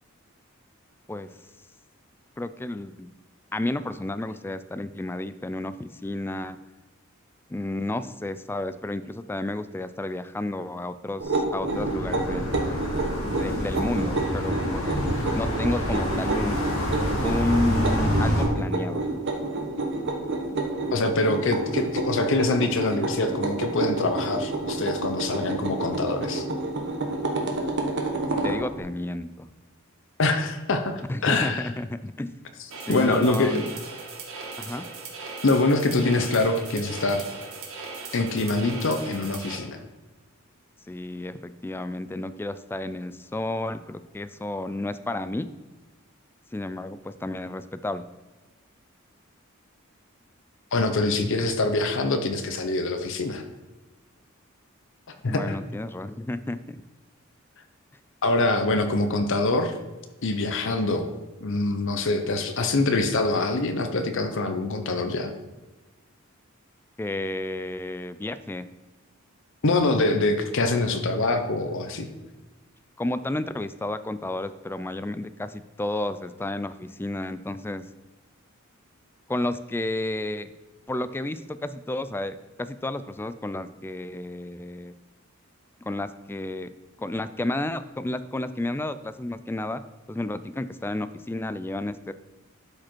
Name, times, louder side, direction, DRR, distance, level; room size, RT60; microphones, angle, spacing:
voice 1, 2.4-3.1 3.5-6.6 7.5-12.7 13.2-15.0 15.3-16.6 17.2-19.0 28.3-29.5 31.1-32.3 32.9-33.8 34.6-34.9 40.9-45.5 46.5-48.1 55.3-56.8 67.0-68.7 73.0-77.9 79.3-80.5 80.9-84.9 85.9-86.7 87.0-89.8 90.1-92.1, left 1 dB, 10° left, 13 dB, 0.3 m, -31 dB
sound 1, 11.2-28.6, right 2 dB, 60° right, 1.3 m, -29 dB
sound 2, 11.7-18.4, equal, 85° left, 2.1 m, -28 dB
voice 2, 20.9-26.4 30.2-30.9 31.2-31.6 32.9-33.6 35.4-37.3 38.1-39.8 50.7-53.4 55.1-55.5 58.2-59.7 60.2-61.1 61.4-65.3 69.6-72.1, left 2 dB, 65° left, 7 dB, 0.8 m, -24 dB
sound 3, 32.7-39.5, right 4 dB, 85° right, 1.9 m, -38 dB
11.5 x 5.0 x 4.5 m, 1.1 s
head